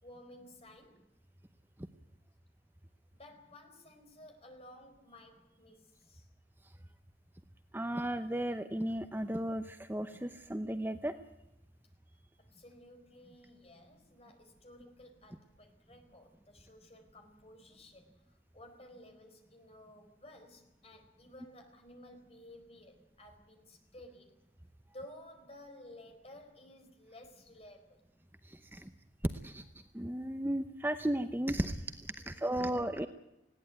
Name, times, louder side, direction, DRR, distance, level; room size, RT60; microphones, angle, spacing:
voice 1, 0.0-1.0 3.1-6.3 12.4-24.4 24.8-28.0 32.1-32.7, left 1 dB, 35° left, 5 dB, 4.5 m, -55 dB
voice 2, 7.7-11.1 28.5-28.9 29.4-29.6 29.9-33.1, right 1 dB, 10° right, 9 dB, 0.8 m, -35 dB
20.0 x 17.0 x 9.3 m, 0.89 s
head